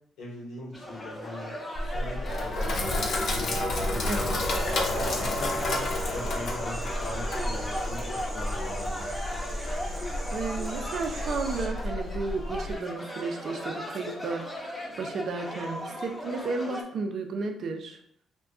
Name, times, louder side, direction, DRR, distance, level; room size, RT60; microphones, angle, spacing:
voice 1, 0.2-1.5 1.9-2.9 3.1-4.3 4.9-9.1, left 1 dB, 80° left, -4 dB, 0.9 m, -40 dB
sound 1, 0.7-16.8, left 1 dB, 15° left, 0.6 m, -37 dB
Sink (filling or washing), 1.8-12.8, left 1 dB, 60° left, 0.6 m, -31 dB
voice 2, 4.1-4.4 9.8-9.9 10.3-18.0, right 4 dB, 60° right, 4 dB, 0.4 m, -33 dB
sound 2, 4.4-11.7, right 1 dB, 15° right, 0.8 m, -40 dB
2.4 x 2.2 x 3.6 m, 0.68 s
cardioid pair, 90°, 0 cm